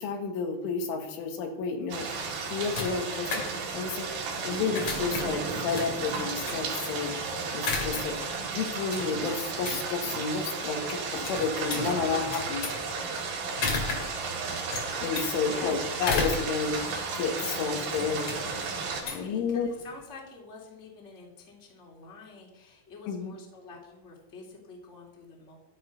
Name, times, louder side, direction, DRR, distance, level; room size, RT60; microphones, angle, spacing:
voice 1, 0.0-3.5 3.7-4.1 4.4-7.1 7.5-12.6 15.0-16.8 17.1-18.3 19.1-19.7 23.1-23.3, left 5 dB, 75° left, 4 dB, 4.1 m, -31 dB
sound 1, 1.9-19.0, right 4 dB, 60° right, 4.2 m, -34 dB
sound 2, 2.3-20.0, left 3 dB, 45° left, 2.5 m, -37 dB
sound 3, 6.2-7.0 7.9-8.5 9.1-9.4 9.6-9.8 10.1-10.4 11.7-12.7, right 7 dB, 85° right, 3.6 m, -43 dB
voice 2, 13.1-14.0 15.5-16.0 18.9-25.6, left 3 dB, 20° left, -1 dB, 2.7 m, -47 dB
13.0 x 12.5 x 5.4 m, 0.88 s
omnidirectional pair, 5.8 m